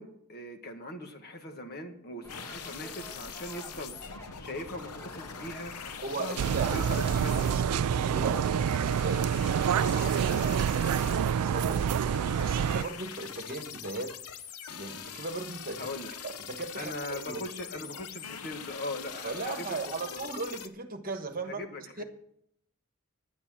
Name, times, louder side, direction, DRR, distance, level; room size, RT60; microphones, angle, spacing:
voice 1, 0.0-3.9 4.4-7.5 15.8-16.1 16.7-20.2 21.4-22.0, left 1 dB, 45° left, 5 dB, 1.5 m, -40 dB
sound 1, 2.2-7.6, right 1 dB, 15° left, 1.3 m, -50 dB
sound 2, 2.3-20.7, left 7 dB, 80° left, 0.8 m, -43 dB
voice 2, 6.0-6.8 7.1-9.4 9.8-14.1 14.7-15.9 16.2-17.4 17.8-17.9 19.2-21.6 22.0-22.1, right 3 dB, 40° right, 7 dB, 1.3 m, -38 dB
sound 3, 6.4-12.8, right 8 dB, 85° right, 0.3 m, -27 dB
10.5 x 9.8 x 6.1 m, 0.71 s
head